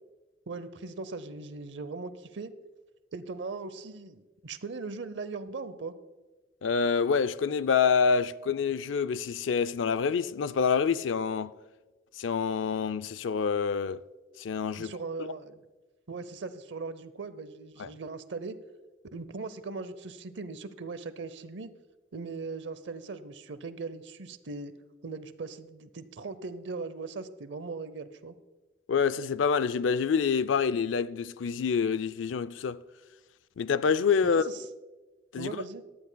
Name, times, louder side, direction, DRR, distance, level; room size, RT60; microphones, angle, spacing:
voice 1, 0.5-2.5 3.1-5.9 14.8-15.6 16.1-18.6 19.1-21.7 22.1-24.7 25.0-28.4 34.2-34.6 35.4-35.8, right 4 dB, 70° right, 0.7 m, -39 dB
voice 2, 6.6-11.5 12.2-14.0 14.4-14.9 17.8-17.9 28.9-32.8 33.6-34.4 35.3-35.5, left 6 dB, 85° left, 0.4 m, -27 dB
18.0 x 12.0 x 2.3 m
head